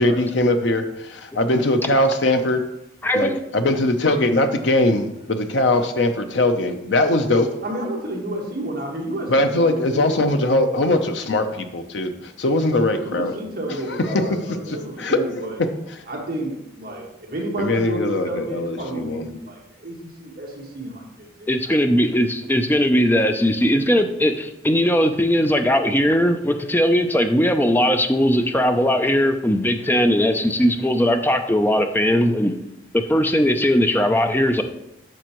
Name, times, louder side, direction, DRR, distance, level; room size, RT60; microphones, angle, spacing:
voice 1, 0.0-2.6 3.1-7.5 9.3-13.3 13.9-15.5 17.6-19.3, left 2 dB, 75° left, 7 dB, 0.7 m, -21 dB
voice 2, 3.0-3.4 21.5-32.5 32.9-34.6, equal, 10° left, 6 dB, 0.4 m, -19 dB
voice 3, 7.6-10.1 13.0-15.6 16.1-21.8, right 1 dB, 50° right, -1 dB, 1.6 m, -31 dB
9.0 x 6.1 x 3.0 m, 0.87 s
head